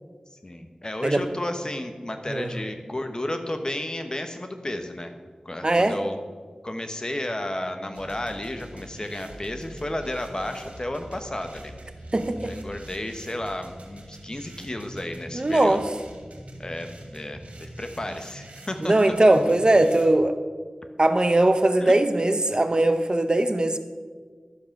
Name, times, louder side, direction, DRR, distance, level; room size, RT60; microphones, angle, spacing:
voice 1, 0.4-5.1 5.4-6.2 6.6-11.7 12.4-15.8 16.6-19.1 21.8-21.9, left 1 dB, 35° left, 6 dB, 1.2 m, -32 dB
voice 2, 5.6-6.0 12.1-12.5 15.3-15.8 18.8-20.3 21.0-23.8, right 2 dB, 40° right, 9 dB, 0.7 m, -20 dB
sound 1, 7.9-20.1, right 1 dB, 85° right, 1.6 m, -44 dB
12.0 x 7.5 x 6.0 m, 1.5 s
wide cardioid pair, 55°, 2 cm